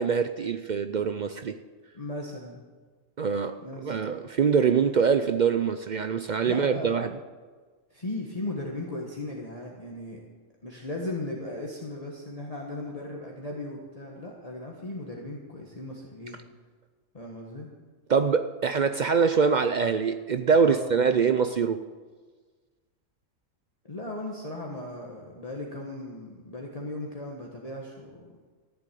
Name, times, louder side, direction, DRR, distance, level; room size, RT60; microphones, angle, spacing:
voice 1, 0.0-1.6 3.2-7.2 18.1-21.8, right 6 dB, 60° right, 9 dB, 0.4 m, -24 dB
voice 2, 1.9-2.6 3.6-4.2 6.4-7.1 7.9-10.2 10.6-16.4 17.1-17.7 20.6-21.1 23.8-28.2, left 2 dB, 30° left, -2 dB, 1.5 m, -37 dB
14.0 x 7.6 x 9.1 m, 1.4 s
omnidirectional pair, 1.3 m